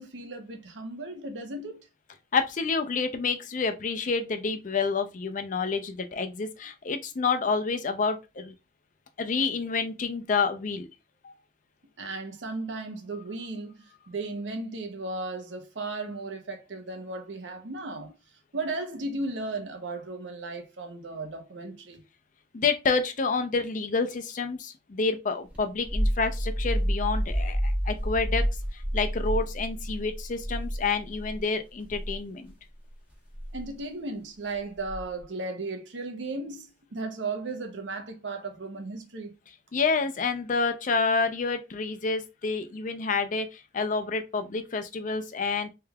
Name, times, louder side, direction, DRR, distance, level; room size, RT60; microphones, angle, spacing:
voice 1, 0.0-1.8 12.0-18.1 18.5-22.0 33.5-39.3, right 2 dB, 80° right, 0.8 m, -35 dB
voice 2, 2.3-8.5 9.2-10.9 11.2-11.3 22.5-28.5 28.7-32.5 39.7-45.7, left 4 dB, 45° left, 0.5 m, -28 dB
sound 1, 25.5-31.4 31.8-32.2 33.3-33.6 34.8-35.2, equal, 10° right, 1.1 m, -29 dB
3.3 x 3.3 x 2.3 m
head